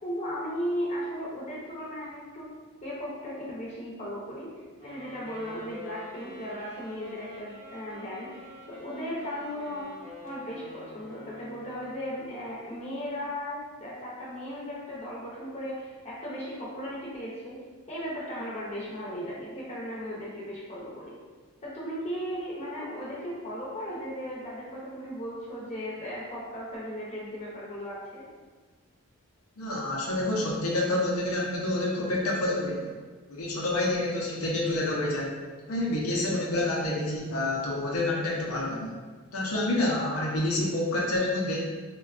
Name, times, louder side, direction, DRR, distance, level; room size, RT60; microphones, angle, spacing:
voice 1, 0.0-2.5 2.8-4.5 4.8-9.8 10.2-17.6 17.9-21.2 21.6-28.3, equal, 30° left, -6 dB, 0.6 m, -36 dB
Wind instrument woodwind instrument, 4.8-12.2, left 1 dB, 25° right, 0.7 m, -48 dB
voice 2, 29.6-32.9 33.3-35.3 35.7-38.9 39.3-41.7, left 1 dB, 80° left, -3 dB, 0.6 m, -28 dB
3.6 x 2.2 x 2.4 m, 1.4 s
head